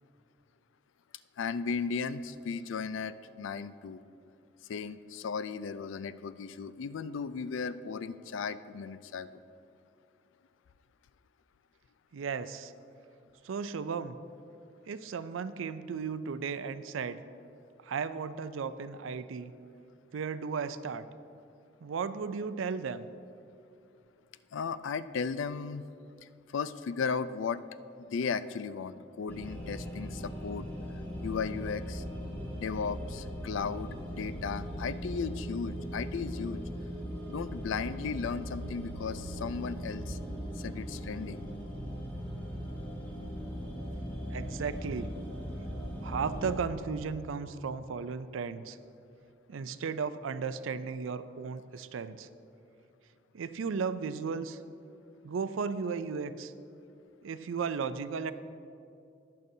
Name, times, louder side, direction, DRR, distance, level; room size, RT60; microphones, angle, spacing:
voice 1, 1.4-4.0 4.7-9.3 24.5-25.9 26.5-27.6 28.0-30.7 31.2-32.0 32.5-36.6 37.3-40.2 40.6-41.4, left 5 dB, 75° left, 14 dB, 0.4 m, -36 dB
voice 2, 12.1-12.7 13.4-14.2 14.9-17.2 17.8-19.5 20.1-21.1 21.8-23.1 44.3-45.1 46.0-48.8 49.5-52.3 53.3-54.6 55.2-56.5 57.2-58.3, right 5 dB, 90° right, 13 dB, 0.4 m, -35 dB
sound 1, 29.3-46.6, equal, 10° left, 2.2 m, -39 dB
20.0 x 6.8 x 2.7 m, 2.6 s
head